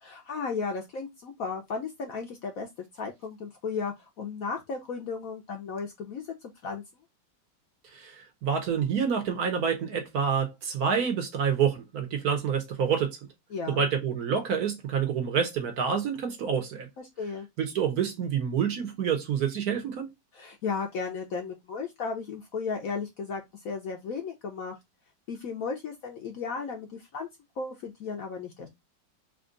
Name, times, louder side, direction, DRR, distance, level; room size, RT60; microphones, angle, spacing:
voice 1, 0.0-2.7 2.9-6.3 6.6-6.8 13.5-13.9 17.2-17.5 20.3-24.7 25.3-27.3 27.6-28.7, left 5 dB, 65° left, 0.9 m, -35 dB
voice 2, 7.9-13.2 13.8-16.9 17.6-20.1, right 7 dB, 60° right, 1.2 m, -28 dB
3.6 x 2.5 x 3.7 m
omnidirectional pair, 2.0 m